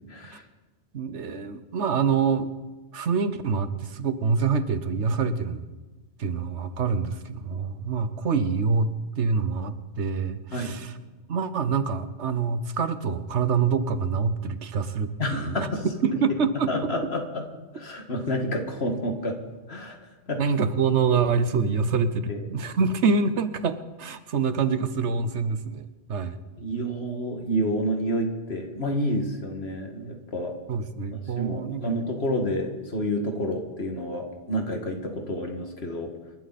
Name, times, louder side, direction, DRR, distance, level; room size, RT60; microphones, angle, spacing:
voice 1, 0.1-0.4 10.5-10.8 15.2-15.9 16.7-17.4 17.7-19.4 19.7-20.0 20.3-20.4 22.3-22.5 26.6-30.5 31.2-36.1, equal, 65° left, 4 dB, 2.3 m, -29 dB
voice 2, 0.9-2.5 2.9-5.7 6.2-10.9 11.3-15.7 16.0-16.9 20.4-26.4 30.7-32.0, right 5 dB, 85° right, 12 dB, 1.3 m, -26 dB
27.5 x 12.0 x 4.2 m, 1.2 s
omnidirectional pair, 1.1 m